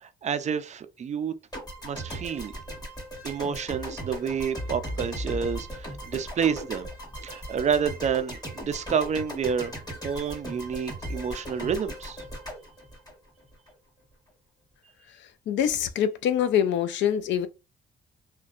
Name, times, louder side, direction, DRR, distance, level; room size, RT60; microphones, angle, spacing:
voice 1, 0.0-1.3 1.8-2.5 3.2-6.9 7.2-9.7 10.0-12.2, right 7 dB, 35° right, 0.4 m, -29 dB
sound 1, 1.5-13.7, equal, 20° left, 1.3 m, -37 dB
voice 2, 15.5-17.5, left 9 dB, 70° left, 0.4 m, -24 dB
2.5 x 2.2 x 2.4 m
cardioid pair, 90°, 20 cm